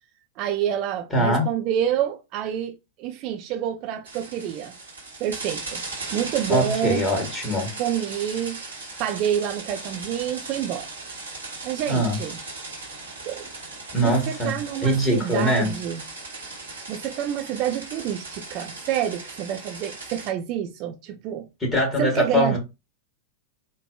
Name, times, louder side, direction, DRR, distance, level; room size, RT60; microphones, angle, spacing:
voice 1, 0.4-4.8 5.2-5.8 6.1-7.1 7.8-8.6 9.0-10.9 11.6-12.4 13.2-13.5 14.0-16.0 16.9-21.5 22.0-22.6, right 10 dB, 40° right, 0.3 m, -28 dB
voice 2, 1.1-1.5 6.5-7.7 11.9-12.2 13.9-14.5 14.8-15.7 21.6-22.6, equal, 15° left, 1.3 m, -22 dB
sound 1, 4.0-20.3, right 3 dB, 75° right, 1.0 m, -37 dB
3.2 x 2.1 x 2.2 m
figure-of-eight pair, 90°, 0 cm